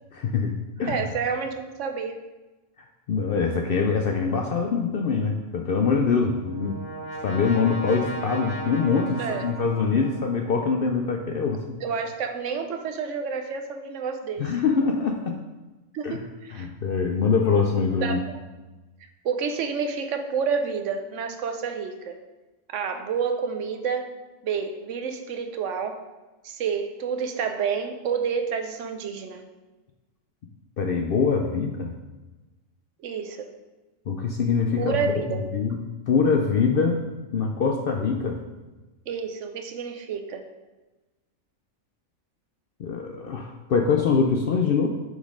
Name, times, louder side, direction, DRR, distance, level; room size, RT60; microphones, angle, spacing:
voice 1, 0.1-1.0 3.1-6.8 7.2-11.8 14.4-15.4 16.0-16.2 16.5-18.2 30.8-31.9 34.1-35.2 35.5-35.8 36.1-37.0 37.3-38.4 42.8-44.9, left 5 dB, 60° left, 2 dB, 0.6 m, -24 dB
voice 2, 0.9-2.2 9.2-9.4 11.8-14.6 15.9-16.7 18.0-18.4 19.2-22.2 22.7-24.1 24.4-26.0 26.4-29.4 33.0-33.5 34.8-35.4 39.1-40.5, right 6 dB, 70° right, 6 dB, 0.9 m, -29 dB
Brass instrument, 5.9-10.7, right 1 dB, 80° left, 2.3 m, -37 dB
6.2 x 4.0 x 4.9 m, 1.1 s
omnidirectional pair, 1.4 m